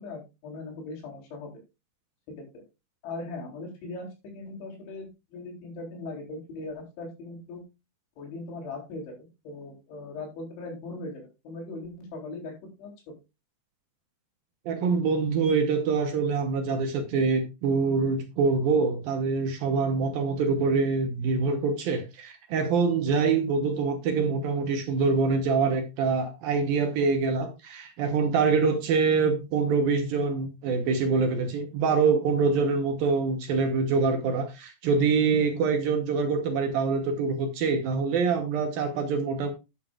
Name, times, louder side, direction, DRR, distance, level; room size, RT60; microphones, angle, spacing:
voice 1, 0.0-1.6 2.5-2.6 3.0-7.6 8.2-12.5 12.8-12.9, left 2 dB, 85° left, 6.2 m, -39 dB
voice 2, 14.7-39.5, right 4 dB, 70° right, 2.4 m, -25 dB
11.5 x 10.5 x 2.4 m
omnidirectional pair, 5.1 m